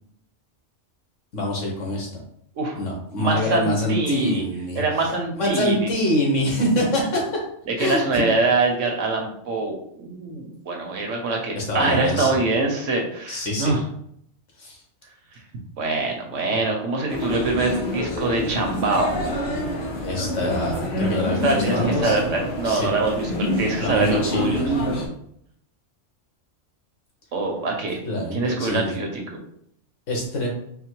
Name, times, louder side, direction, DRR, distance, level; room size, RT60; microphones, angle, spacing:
voice 1, 1.3-2.1 2.8-4.8 5.4-7.3 7.8-8.2 11.6-12.3 13.3-13.7 14.6-14.8 20.0-22.2 22.6-22.9 23.8-25.1 28.1-28.9 30.1-30.5, equal, 80° left, 0 dB, 1.6 m, -25 dB
voice 2, 3.2-4.4 4.7-5.9 7.7-13.8 15.8-19.2 21.3-24.6 27.3-28.0 28.3-29.2, right 3 dB, 80° right, 2 dB, 1.3 m, -24 dB
sound 1, 17.1-25.1, equal, 60° left, 1.4 m, -27 dB
4.3 x 2.1 x 4.5 m, 0.69 s
omnidirectional pair, 1.3 m